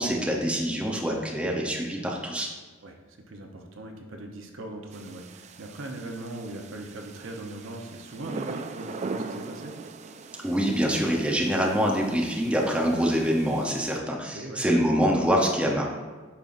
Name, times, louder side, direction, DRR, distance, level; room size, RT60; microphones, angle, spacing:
voice 1, 0.0-2.5 10.4-15.9, equal, 5° right, -1 dB, 0.7 m, -25 dB
voice 2, 3.3-9.7 14.3-14.6, right 1 dB, 80° right, 3 dB, 0.8 m, -39 dB
sound 1, 4.9-14.0, right 3 dB, 35° right, 0.3 m, -41 dB
8.7 x 5.5 x 2.6 m, 1.4 s
head